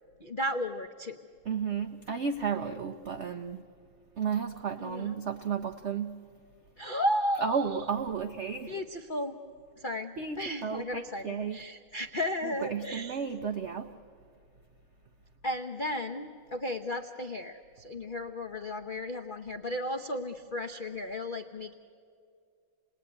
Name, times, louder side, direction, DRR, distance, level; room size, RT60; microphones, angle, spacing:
voice 1, 0.2-1.2 4.8-5.2 6.8-7.8 8.7-9.4 9.8-13.2 15.4-21.7, left 1 dB, 65° left, 3 dB, 0.5 m, -34 dB
voice 2, 1.5-3.6 4.2-6.2 7.4-8.7 10.2-11.6 12.4-13.9, right 6 dB, 75° right, 6 dB, 0.6 m, -33 dB
28.0 x 19.5 x 9.7 m, 2.3 s
omnidirectional pair, 2.2 m